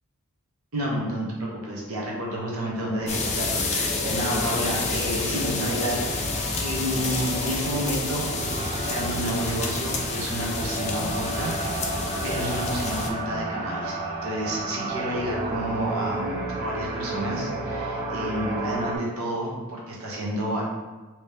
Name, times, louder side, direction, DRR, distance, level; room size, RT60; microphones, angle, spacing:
voice 1, 0.7-6.3 6.6-8.3 8.6-11.5 12.2-20.6, equal, 75° right, -4 dB, 1.0 m, -30 dB
sound 1, 2.9-19.0, right 2 dB, 15° right, 1.3 m, -33 dB
sound 2, 3.1-13.1, left 3 dB, 30° left, 0.4 m, -29 dB
3.0 x 2.9 x 3.3 m, 1.2 s
head